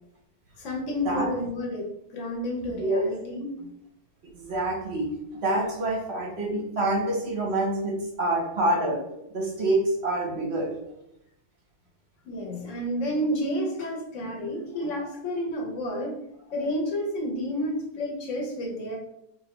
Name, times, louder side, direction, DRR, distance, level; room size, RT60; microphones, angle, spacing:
voice 1, 0.6-3.7 12.2-16.2 16.5-19.0, equal, 50° left, 1 dB, 1.0 m, -30 dB
voice 2, 4.3-9.0 9.3-10.7, right 1 dB, 50° right, -1 dB, 0.8 m, -27 dB
4.6 x 2.7 x 2.9 m, 0.80 s
omnidirectional pair, 1.9 m